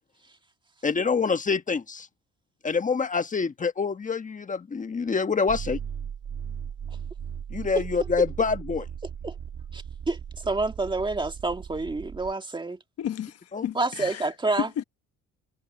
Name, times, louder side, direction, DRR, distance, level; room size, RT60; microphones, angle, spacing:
voice 1, 0.8-2.1 2.6-5.8 7.5-8.9 13.5-13.7, left 5 dB, 25° left, 1.4 m, -26 dB
sound 1, 5.5-12.3, right 8 dB, 45° right, 2.4 m, -37 dB
voice 2, 9.7-12.8 13.8-14.7, right 3 dB, 15° right, 1.7 m, -28 dB
voice 3, 13.0-14.3 14.5-14.8, left 10 dB, 55° left, 1.2 m, -32 dB
cardioid pair, 105°, 29 cm